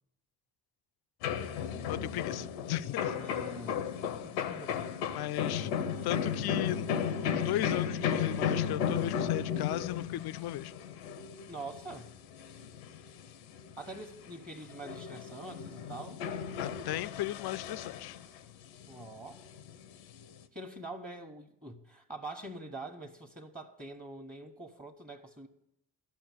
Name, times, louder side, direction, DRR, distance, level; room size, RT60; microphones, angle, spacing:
sound 1, 1.2-14.3 14.7-18.4 18.7-20.4, left 7 dB, 90° left, 0.8 m, -35 dB
voice 1, 1.9-3.1 5.1-6.9 7.2-10.7 16.6-18.2, left 14 dB, 55° left, 0.5 m, -36 dB
voice 2, 3.1-3.9 4.2-4.8 5.9-6.1 11.5-12.1 13.8-16.2 18.9-19.4 20.5-25.5, right 2 dB, 20° right, 1.4 m, -45 dB
12.0 x 5.9 x 8.6 m
hypercardioid pair, 50°, 47 cm